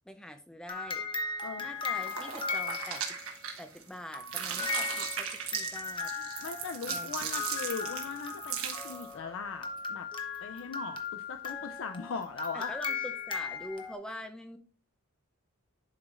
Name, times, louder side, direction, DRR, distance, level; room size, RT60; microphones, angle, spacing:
voice 1, 0.0-1.1 1.6-3.0 3.6-6.1 6.9-7.4 12.5-14.6, left 1 dB, 5° left, 7 dB, 0.5 m, -44 dB
sound 1, 0.7-3.4 4.1-13.9, left 4 dB, 20° left, 0.9 m, -37 dB
voice 2, 1.4-1.9 6.1-10.1 10.4-12.8, left 5 dB, 60° left, 8 dB, 0.4 m, -40 dB
sound 2, 1.9-3.9 4.2-9.1, right 8 dB, 65° right, 1.3 m, -38 dB
11.0 x 4.8 x 2.5 m, 0.38 s
head